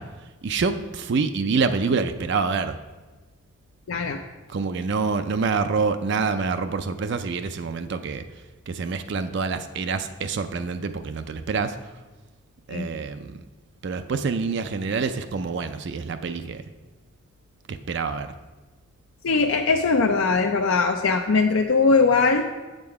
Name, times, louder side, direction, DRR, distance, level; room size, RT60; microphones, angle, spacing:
voice 1, 0.0-2.8 4.5-11.8 12.7-13.4 13.8-16.6 17.7-18.3, right 4 dB, 55° right, 9 dB, 0.4 m, -27 dB
voice 2, 3.9-4.2 12.7-12.9 19.2-22.4, left 4 dB, 70° left, 3 dB, 0.5 m, -20 dB
7.7 x 7.5 x 4.7 m, 1.2 s
head